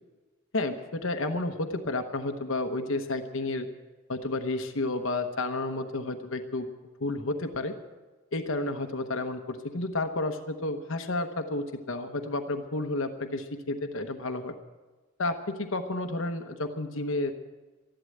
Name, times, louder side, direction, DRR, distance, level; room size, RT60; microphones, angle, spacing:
voice 1, 0.5-3.7 4.1-6.7 7.0-7.7 8.3-14.5 15.2-17.3, left 2 dB, 85° left, 6 dB, 1.0 m, -31 dB
13.5 x 11.5 x 7.8 m, 1.2 s
head